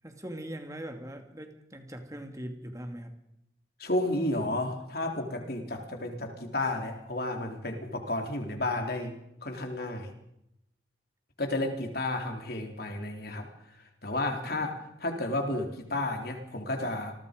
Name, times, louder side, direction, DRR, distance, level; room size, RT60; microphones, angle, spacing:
voice 1, 0.0-3.1 14.4-14.7, right 1 dB, 15° right, 5 dB, 2.6 m, -41 dB
voice 2, 3.8-10.1 11.4-13.5 14.0-17.1, left 2 dB, 50° left, 4 dB, 3.7 m, -32 dB
28.5 x 20.5 x 5.3 m, 0.81 s
head